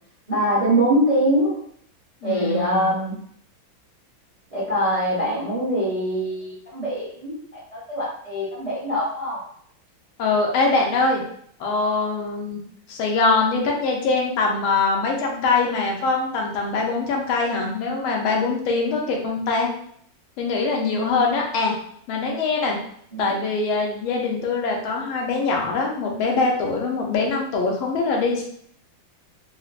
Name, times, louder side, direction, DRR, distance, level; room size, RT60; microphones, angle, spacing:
voice 1, 0.3-1.5 2.2-3.2 4.5-9.4 23.1-23.3, right 1 dB, 30° right, -8 dB, 0.7 m, -23 dB
voice 2, 2.2-2.9 10.2-11.2 11.6-12.6 12.9-19.7 20.4-21.7 22.1-22.8 23.2-28.4, left 3 dB, 85° left, 0 dB, 1.5 m, -23 dB
4.3 x 2.0 x 2.4 m, 0.64 s
omnidirectional pair, 2.2 m